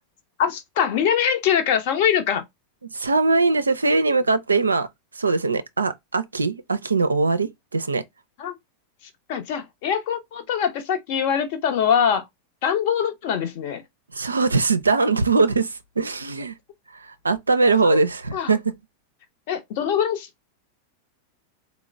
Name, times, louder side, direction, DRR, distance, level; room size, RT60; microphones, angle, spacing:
voice 1, 0.4-2.4 8.4-8.5 9.3-12.2 12.6-13.8 17.8-18.0 18.3-18.5 19.5-20.5, left 8 dB, 50° left, 0.8 m, -23 dB
voice 2, 2.9-4.9 5.2-8.0 14.1-16.5 16.9-18.7, right 3 dB, 75° right, 0.4 m, -21 dB
3.8 x 2.0 x 3.2 m
figure-of-eight pair, 90°, 0 cm